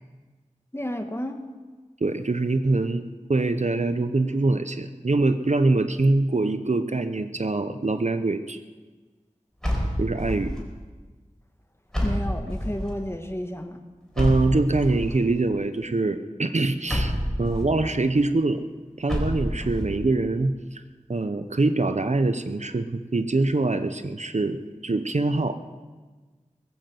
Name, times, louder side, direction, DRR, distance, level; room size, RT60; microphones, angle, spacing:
voice 1, 0.7-1.4 12.0-13.8, left 1 dB, 20° left, 5 dB, 1.6 m, -31 dB
voice 2, 2.0-3.0 3.3-8.6 10.0-10.6 14.2-17.1 17.4-18.6 19.0-20.8 21.1-25.6, right 2 dB, 60° right, 10 dB, 0.8 m, -24 dB
sound 1, 9.6-10.6 11.9-12.9 14.2-15.1 16.9-17.8 19.1-19.9, equal, 5° left, 4.7 m, -27 dB
21.0 x 7.8 x 7.8 m, 1.4 s
wide cardioid pair, 45°, 13 cm